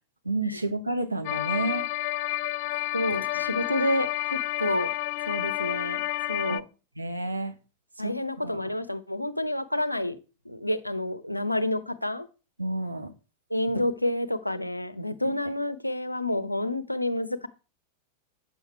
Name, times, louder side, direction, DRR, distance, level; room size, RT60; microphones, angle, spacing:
voice 1, 0.2-1.9 6.5-6.6 7.0-7.5 8.0-8.1 8.4-8.6 12.6-13.1 15.2-15.3, right 2 dB, 85° right, 6 dB, 1.2 m, -30 dB
sound 1, 1.2-6.6, left 17 dB, 50° left, 0.3 m, -30 dB
voice 2, 2.9-4.9 5.3-6.6 8.0-10.2 10.4-12.3 13.5-17.5, left 1 dB, 85° left, 13 dB, 0.7 m, -29 dB
8.9 x 7.1 x 4.6 m, 0.33 s
figure-of-eight pair, 90°, 0 cm